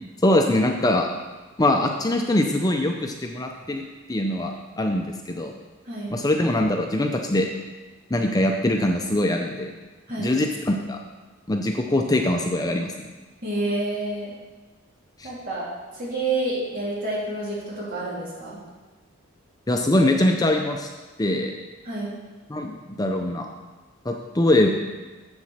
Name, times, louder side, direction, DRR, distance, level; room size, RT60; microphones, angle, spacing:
voice 1, 0.2-1.1 1.6-3.8 4.1-5.5 6.1-7.5 8.1-9.7 10.2-11.0 11.5-13.1 15.2-15.3 19.7-20.9 21.2-21.5 22.5-22.7 23.0-23.5 24.0-24.7, left 1 dB, 20° left, 3 dB, 0.6 m, -22 dB
voice 2, 13.4-14.3 15.2-15.7 15.9-18.6 21.9-22.1, right 2 dB, 45° right, -6 dB, 3.4 m, -28 dB
7.6 x 7.1 x 6.5 m, 1.3 s
head